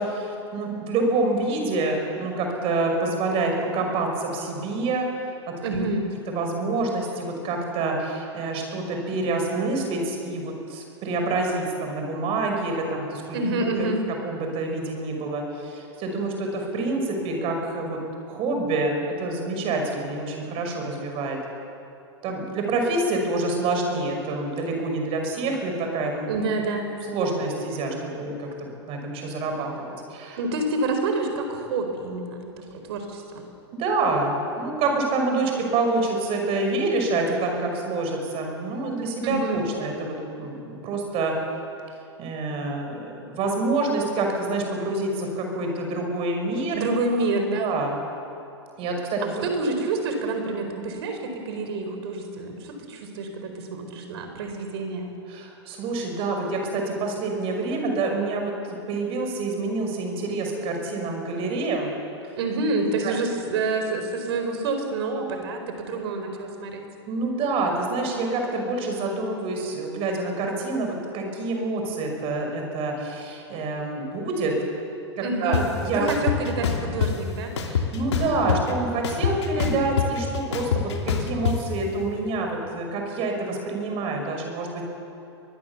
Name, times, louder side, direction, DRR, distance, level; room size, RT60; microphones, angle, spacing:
voice 1, 0.0-5.1 5.7-5.8 6.3-13.9 14.2-18.0 18.3-21.4 22.2-26.4 27.1-29.8 30.1-30.4 33.8-41.3 42.2-46.8 47.6-48.0 48.8-49.5 55.3-62.0 63.0-63.1 67.1-74.5 75.2-76.1 77.7-84.8, right 3 dB, 40° right, 2 dB, 5.9 m, -27 dB
voice 2, 5.6-6.1 13.3-14.0 26.3-26.9 30.4-33.4 39.2-39.7 46.7-47.7 49.2-55.1 62.4-66.9 75.2-75.7 75.9-77.5, right 3 dB, 65° right, 5 dB, 4.4 m, -28 dB
sound 1, 75.5-75.6 76.1-77.1 77.6-78.7 79.0-81.6, left 7 dB, 75° left, 3.0 m, -24 dB
23.5 x 20.5 x 7.2 m, 2.8 s
hypercardioid pair, 105°, 15 cm